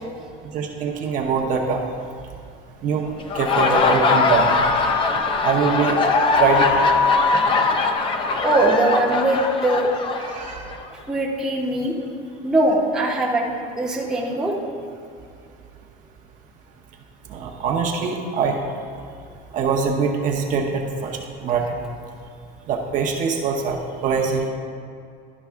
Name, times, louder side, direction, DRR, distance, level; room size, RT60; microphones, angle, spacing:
voice 1, 0.5-1.8 2.8-3.1 3.3-4.6 5.4-5.9 6.4-6.9 10.3-10.6 17.3-18.6 19.5-21.6 22.7-23.8 24.0-24.5, right 5 dB, 40° right, 0 dB, 0.7 m, -23 dB
Laughter, 3.2-10.8, left 4 dB, 25° left, 0.4 m, -20 dB
voice 2, 7.3-7.6 8.3-9.9 11.1-11.9 12.4-14.5, right 2 dB, 5° right, -4 dB, 0.7 m, -21 dB
12.0 x 5.3 x 3.5 m, 2.4 s
cardioid pair, 170°, 21 cm